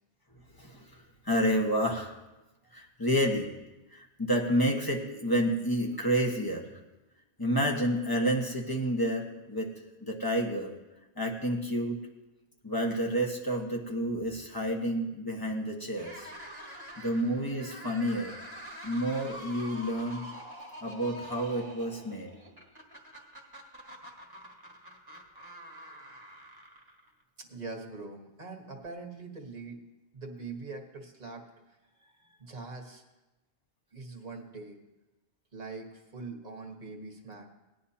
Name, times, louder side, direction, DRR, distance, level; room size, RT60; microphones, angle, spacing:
voice 1, 0.6-2.1 2.7-3.5 3.9-6.7 7.4-9.7 10.0-10.7 11.2-12.0 12.6-16.3 17.0-18.3 18.8-20.2 20.8-22.3, equal, 20° left, 0 dB, 1.4 m, -29 dB
sound 1, 15.9-27.2, equal, 20° right, 1.6 m, -46 dB
voice 2, 27.4-29.8 30.1-33.0 33.9-34.8 35.5-37.5, right 3 dB, 40° right, 1 dB, 1.5 m, -43 dB
19.0 x 10.0 x 2.8 m, 1.0 s
omnidirectional pair, 1.1 m